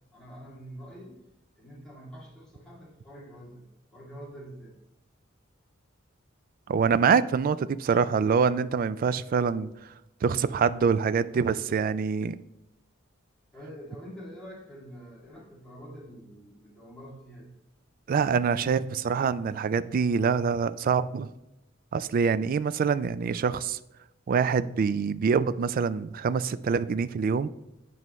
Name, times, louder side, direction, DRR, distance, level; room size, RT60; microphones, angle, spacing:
voice 1, 0.1-1.2 1.6-4.8 13.5-17.5, equal, 5° left, 2.6 m, -46 dB
voice 2, 6.7-9.7 10.2-12.4 18.1-21.3 21.9-23.8 24.3-27.5, right 6 dB, 45° right, 0.3 m, -25 dB
9.4 x 5.4 x 3.1 m
head